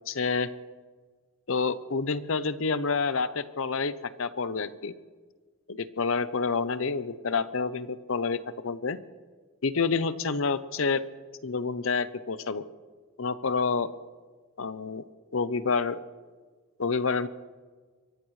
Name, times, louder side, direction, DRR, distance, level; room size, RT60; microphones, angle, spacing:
voice 1, 0.1-0.5 1.5-4.9 5.7-9.0 9.6-11.0 11.4-12.6 13.2-13.9 14.6-15.0 15.3-16.0 16.8-17.3, left 4 dB, 65° left, 14 dB, 0.7 m, -28 dB
24.0 x 17.0 x 3.3 m, 1.4 s
head